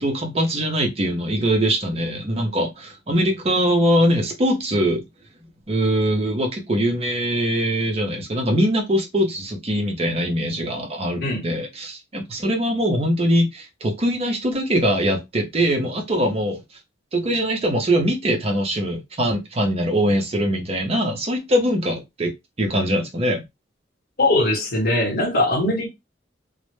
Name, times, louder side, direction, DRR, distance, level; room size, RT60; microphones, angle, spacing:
voice 1, 0.0-5.1 5.7-16.6 17.1-22.3 22.6-23.4, equal, 35° right, 0.6 m, -22 dB
voice 2, 24.2-25.9, left 2 dB, 55° left, 0.9 m, -20 dB
2.0 x 2.0 x 3.0 m
head